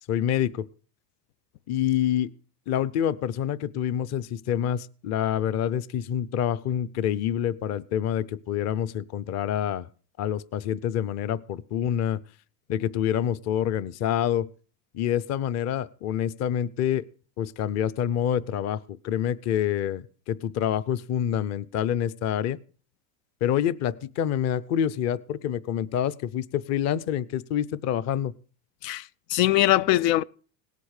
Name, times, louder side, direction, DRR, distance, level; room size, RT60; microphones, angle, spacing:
voice 1, 0.1-0.7 1.7-2.3 2.7-9.9 10.2-12.2 12.7-14.5 14.9-17.0 17.4-22.6 23.4-28.3, left 10 dB, 35° left, 0.6 m, -27 dB
voice 2, 28.8-30.2, left 15 dB, 85° left, 0.6 m, -22 dB
18.0 x 8.4 x 6.5 m
supercardioid pair, 140°, 48 cm